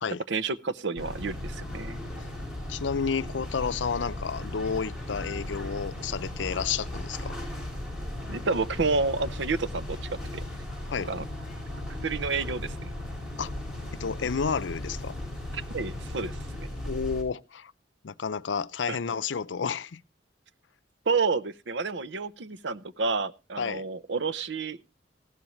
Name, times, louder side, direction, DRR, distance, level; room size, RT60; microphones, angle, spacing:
voice 1, 0.3-2.0 8.3-10.4 11.1-11.2 12.0-12.9 15.5-16.7 18.9-19.0 21.1-24.8, right 4 dB, 70° right, 0.7 m, -30 dB
sound 1, 1.0-17.2, left 1 dB, 5° right, 5.0 m, -37 dB
voice 2, 2.7-7.3 10.9-11.1 13.4-13.5 13.9-15.1 16.8-17.7 18.0-20.0 23.6-23.8, left 6 dB, 85° left, 0.6 m, -31 dB
16.0 x 12.0 x 3.1 m
head